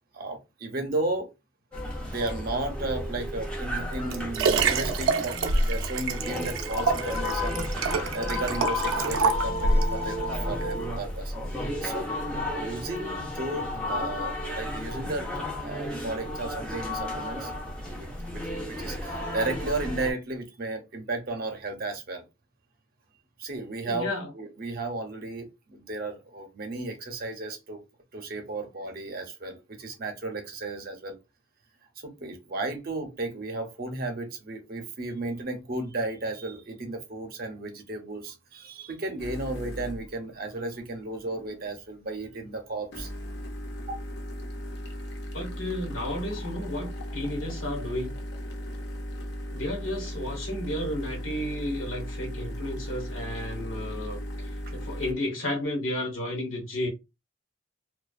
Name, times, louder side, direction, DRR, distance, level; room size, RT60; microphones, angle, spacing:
voice 1, 0.1-1.3 2.0-5.3 5.7-11.3 11.8-12.1 12.4-15.3 15.6-17.5 18.0-22.2 23.4-27.8 28.1-31.2 32.0-43.1 54.7-54.8, right 2 dB, 45° right, 0.6 m, -34 dB
sound 1, 1.7-20.1, left 1 dB, 5° left, 0.6 m, -33 dB
Liquid, 3.7-10.0 10.6-10.7, right 3 dB, 90° right, 0.4 m, -26 dB
voice 2, 23.9-24.3 45.3-48.1 49.5-56.9, left 1 dB, 85° left, 1.1 m, -32 dB
sound 2, 39.2-40.2 42.9-55.1, equal, 55° left, 0.5 m, -36 dB
2.4 x 2.2 x 2.3 m
head